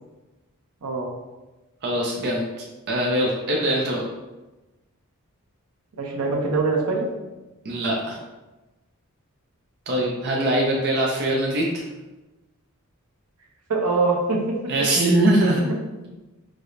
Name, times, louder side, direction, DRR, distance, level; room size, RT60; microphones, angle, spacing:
voice 1, 0.8-1.1 6.0-7.1 13.7-14.4 15.5-16.1, right 3 dB, 85° right, -2 dB, 0.7 m, -24 dB
voice 2, 1.8-2.4 2.9-4.0 7.6-8.2 9.9-11.8 14.7-15.6, right 1 dB, 50° right, -2 dB, 0.4 m, -22 dB
4.7 x 2.0 x 2.6 m, 1.1 s
head